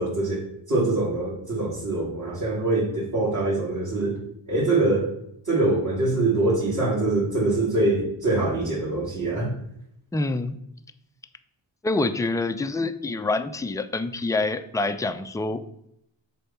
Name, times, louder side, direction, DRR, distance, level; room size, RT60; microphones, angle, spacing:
voice 1, 0.0-4.2 4.5-5.1 5.5-9.5, right 2 dB, 40° right, -5 dB, 2.6 m, -24 dB
voice 2, 10.1-10.6 11.8-15.6, left 2 dB, 5° left, 9 dB, 0.5 m, -26 dB
6.9 x 4.2 x 5.8 m, 0.78 s
cardioid pair, 70°, 47 cm